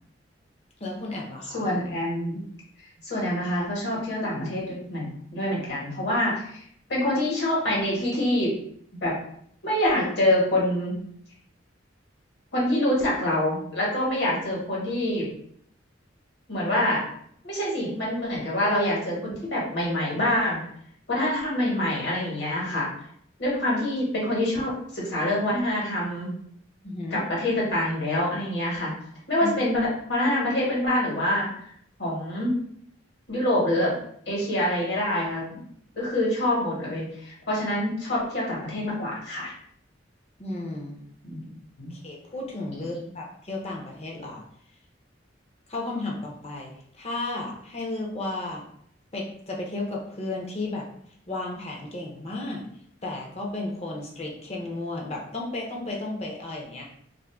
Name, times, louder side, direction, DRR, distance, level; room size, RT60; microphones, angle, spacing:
voice 1, 0.8-1.7 26.8-27.2 29.4-29.5 40.4-41.1 41.9-44.4 45.7-46.7 47.0-48.6 49.1-50.9 51.3-52.6 53.0-56.8, left 2 dB, 35° left, -1 dB, 0.6 m, -33 dB
voice 2, 1.5-2.4 2.8-5.1 5.3-6.6 6.9-8.6 9.0-9.2 9.6-11.0 12.5-15.3 16.5-17.0 17.4-20.6 21.1-22.9 23.4-26.3 27.1-28.9 29.3-31.7 32.0-32.5 33.3-33.9 34.3-35.6 35.9-39.5 41.2-42.0 42.7-42.8, left 1 dB, 60° left, -5 dB, 1.3 m, -26 dB
2.6 x 2.5 x 3.5 m, 0.67 s
head